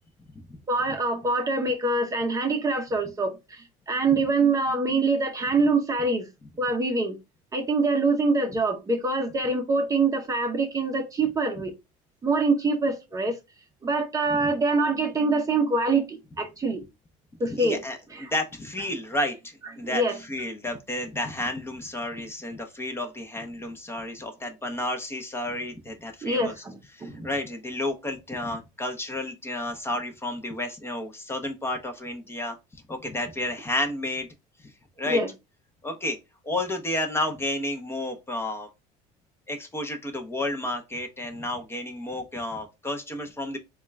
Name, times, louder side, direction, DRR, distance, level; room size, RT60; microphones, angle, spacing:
voice 1, 0.7-6.3 6.6-7.2 7.5-11.7 12.2-13.4 13.8-16.8 17.4-17.8 18.1-18.3 19.8-20.2 26.2-27.3 35.1-35.3, right 3 dB, 20° right, 0.7 m, -25 dB
voice 2, 17.5-26.5 26.9-32.6 32.9-34.3 35.0-35.2 35.8-36.2 36.4-38.7 39.5-43.6, left 1 dB, 15° left, 0.7 m, -31 dB
3.6 x 2.3 x 3.1 m
cardioid pair, 125°, 16 cm